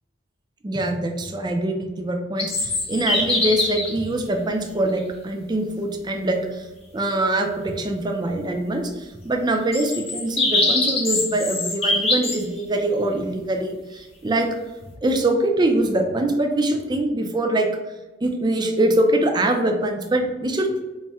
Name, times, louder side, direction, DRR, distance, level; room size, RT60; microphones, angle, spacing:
voice 1, 0.6-6.6 6.9-14.5 15.0-17.7 18.2-20.8, right 1 dB, 25° right, 3 dB, 0.5 m, -23 dB
sound 1, 2.4-3.9 5.0-5.1 9.7-12.4, left 2 dB, 35° left, 0.8 m, -23 dB
4.2 x 2.1 x 3.4 m, 1.1 s
head